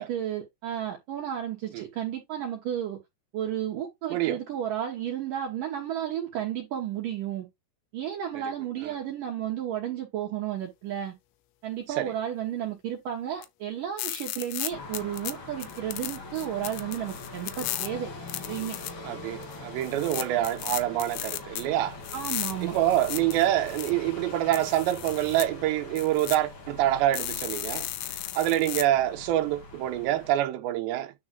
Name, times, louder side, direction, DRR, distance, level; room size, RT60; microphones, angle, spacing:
voice 1, 0.0-3.0 3.3-7.5 7.9-11.1 11.6-18.1 18.5-18.8 22.1-22.8, right 10 dB, 60° right, 2.4 m, -32 dB
sound 1, 13.4-13.5 14.0-15.3 15.6-17.9 18.3-18.9 19.4-19.6 19.8-21.6 22.0-23.9 24.5-25.5 26.0-26.4 27.1-28.8, left 15 dB, 85° left, 3.1 m, -35 dB
sound 2, 14.7-30.3, left 3 dB, 50° left, 1.6 m, -43 dB
voice 2, 19.0-22.0 22.6-27.9 28.3-31.1, right 13 dB, 80° right, 3.1 m, -26 dB
9.6 x 3.7 x 3.7 m
omnidirectional pair, 5.2 m